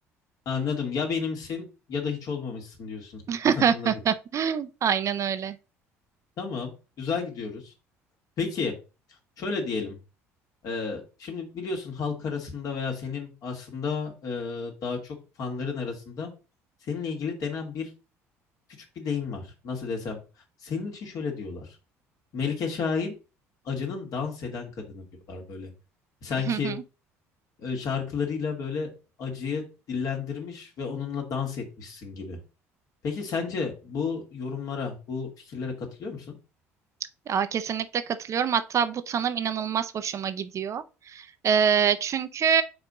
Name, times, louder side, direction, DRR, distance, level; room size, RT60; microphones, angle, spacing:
voice 1, 0.5-3.2 3.6-3.9 6.4-6.7 7.0-7.7 8.4-8.7 9.4-10.0 10.6-16.3 16.8-17.9 19.0-20.2 20.6-21.8 22.3-23.1 23.6-25.7 26.2-26.7 27.6-28.9 29.2-32.4 33.0-36.3, left 5 dB, 55° left, 2.4 m, -32 dB
voice 2, 3.3-5.6 26.5-26.8 37.3-40.8 41.1-42.6, right 7 dB, 45° right, 0.6 m, -25 dB
4.7 x 4.2 x 5.0 m
hypercardioid pair, 60°, 7 cm